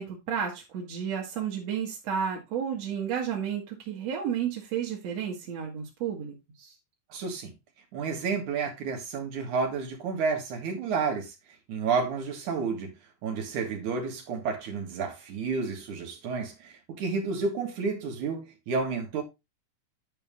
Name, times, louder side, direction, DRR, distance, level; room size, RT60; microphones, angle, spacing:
voice 1, 0.0-6.7, right 8 dB, 60° right, -2 dB, 2.8 m, -32 dB
voice 2, 7.1-7.5 7.9-11.3 11.7-12.9 13.2-19.2, right 5 dB, 85° right, 3 dB, 3.3 m, -30 dB
10.0 x 5.6 x 3.6 m, 0.22 s
omnidirectional pair, 3.4 m